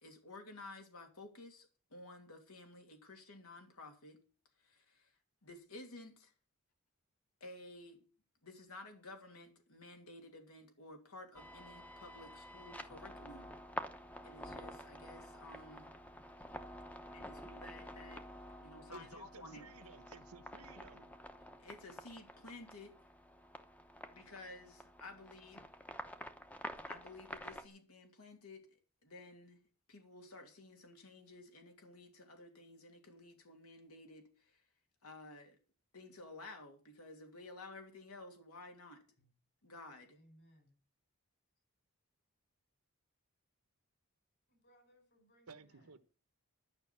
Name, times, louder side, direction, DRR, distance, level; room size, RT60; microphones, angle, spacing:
voice 1, 0.0-4.2 4.6-5.1 5.4-6.3 7.4-8.0 8.4-13.6 14.2-15.9 17.1-18.2 18.6-19.6 21.6-23.0 24.1-25.6 26.9-28.7 29.0-29.6 29.9-34.6 35.0-35.6 35.9-39.0 39.6-40.2, left 2 dB, 80° left, 2.8 m, -53 dB
sound 1, 11.3-27.7, equal, 5° left, 0.8 m, -49 dB
voice 2, 18.9-21.1 45.5-46.0, right 4 dB, 80° right, 1.2 m, -55 dB
voice 3, 40.1-40.7 44.5-46.0, equal, 50° left, 5.0 m, -67 dB
11.5 x 6.4 x 8.7 m
head